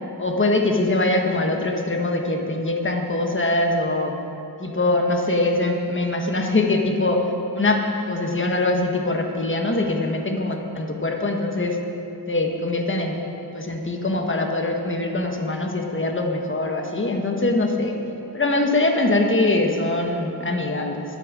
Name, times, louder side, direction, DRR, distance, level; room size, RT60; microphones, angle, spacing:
voice 1, 0.2-4.1 4.6-7.2 7.5-11.8 12.3-13.1 13.5-17.9 18.3-21.0, left 2 dB, 30° left, 2 dB, 1.5 m, -23 dB
12.5 x 9.1 x 7.5 m, 3.0 s
wide cardioid pair, 85°, 39 cm